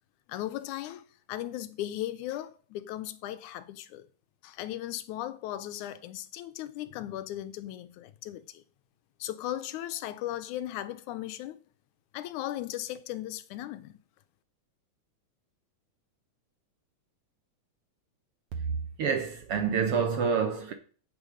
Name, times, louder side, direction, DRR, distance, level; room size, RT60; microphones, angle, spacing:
voice 1, 0.3-4.1 4.4-8.6 9.2-11.6 12.1-14.0, left 13 dB, 80° left, 2.1 m, -37 dB
voice 2, 19.0-20.7, right 6 dB, 65° right, 1.5 m, -27 dB
9.6 x 8.3 x 5.1 m
omnidirectional pair, 3.6 m